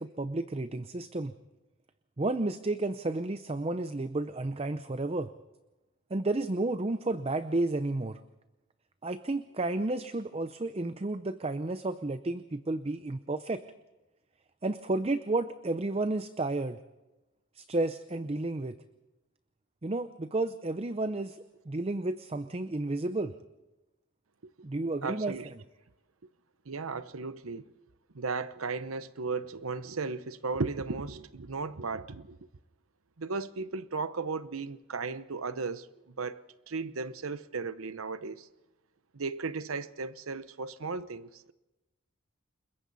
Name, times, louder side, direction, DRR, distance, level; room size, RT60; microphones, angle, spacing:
voice 1, 0.0-1.3 2.2-5.3 6.1-8.2 9.0-13.6 14.6-16.8 17.5-18.8 19.8-23.3 24.6-25.3, right 2 dB, 30° right, 0.6 m, -32 dB
voice 2, 25.0-25.5 26.7-27.6 28.1-32.4 33.2-38.5 39.1-41.5, right 4 dB, 90° right, 0.9 m, -35 dB
29.5 x 21.5 x 4.1 m
head